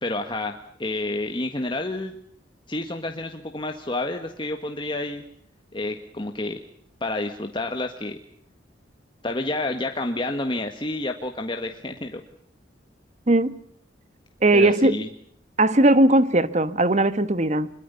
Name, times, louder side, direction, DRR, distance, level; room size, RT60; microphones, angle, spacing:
voice 1, 0.0-2.1 2.7-5.2 5.7-6.6 7.0-8.2 9.2-12.2 14.5-15.1, left 2 dB, 25° left, 1.7 m, -29 dB
voice 2, 14.4-15.0 15.6-17.7, right 2 dB, 35° right, 1.3 m, -18 dB
25.5 x 22.5 x 7.0 m
head